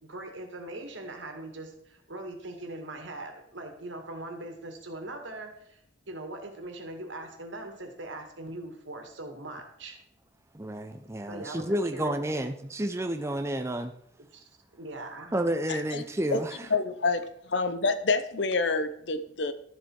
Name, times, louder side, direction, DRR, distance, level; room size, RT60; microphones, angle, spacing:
voice 1, 0.0-5.8 6.1-10.0 11.3-12.1 14.3-14.4 14.7-15.3, right 2 dB, 75° right, 4 dB, 2.1 m, -41 dB
voice 2, 10.5-13.9 15.3-16.7, right 1 dB, 15° right, 7 dB, 0.6 m, -30 dB
voice 3, 15.7-16.0 16.3-16.4 16.7-17.2 17.5-19.5, left 3 dB, 65° left, 11 dB, 0.8 m, -27 dB
12.5 x 7.3 x 4.7 m, 0.70 s
head